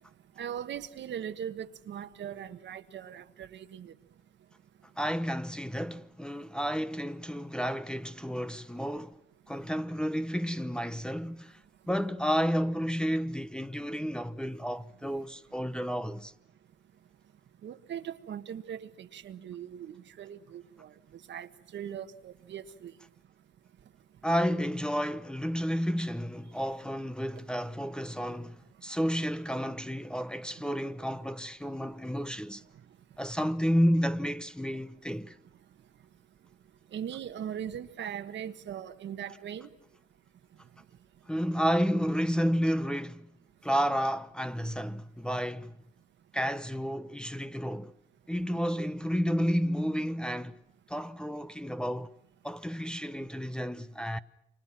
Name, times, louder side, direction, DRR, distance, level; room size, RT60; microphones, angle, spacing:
voice 1, 0.4-3.9 17.6-20.9 21.3-22.9 36.9-39.7, right 9 dB, 65° right, 1.5 m, -40 dB
voice 2, 5.0-9.2 9.5-11.6 11.9-16.3 24.2-32.6 33.2-35.3 41.3-43.3 43.6-45.7 46.3-47.9 48.3-50.6 50.9-52.1 52.4-54.2, equal, 5° left, 0.9 m, -31 dB
29.5 x 25.0 x 6.0 m
cardioid pair, 90°, 20 cm